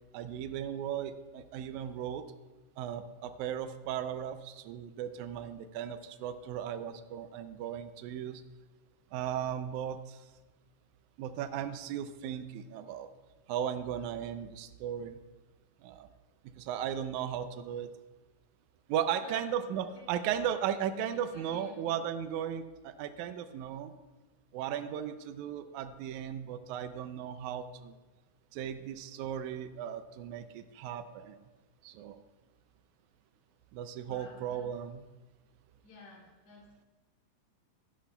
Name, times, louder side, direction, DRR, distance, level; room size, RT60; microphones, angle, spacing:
voice 1, 0.1-2.3 2.8-8.4 9.1-10.2 11.2-13.1 13.5-15.2 15.8-16.1 16.6-17.9 18.9-23.9 24.5-27.9 28.5-31.4 31.8-32.2 33.7-35.0, right 9 dB, 85° right, 10 dB, 1.7 m, -36 dB
voice 2, 21.1-21.8 34.0-34.6 35.8-36.7, left 2 dB, 50° left, -4 dB, 3.0 m, -53 dB
13.5 x 11.0 x 2.3 m, 1.2 s
omnidirectional pair, 4.0 m